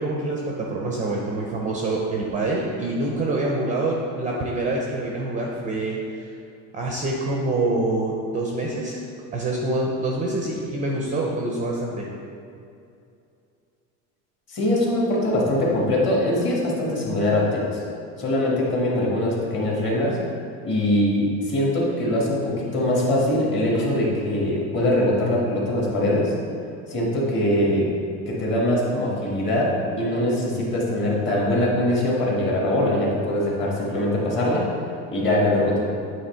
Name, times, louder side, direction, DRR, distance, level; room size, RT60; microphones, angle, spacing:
voice 1, 0.0-6.3 6.7-9.0 9.3-12.1, right 2 dB, 20° right, -1 dB, 0.4 m, -26 dB
voice 2, 14.5-17.7 18.2-20.2 20.6-26.3 26.9-27.9 28.3-34.7 35.1-35.8, left 1 dB, 30° left, -4 dB, 1.4 m, -22 dB
8.6 x 3.1 x 4.4 m, 2.5 s
cardioid pair, 160°, 38 cm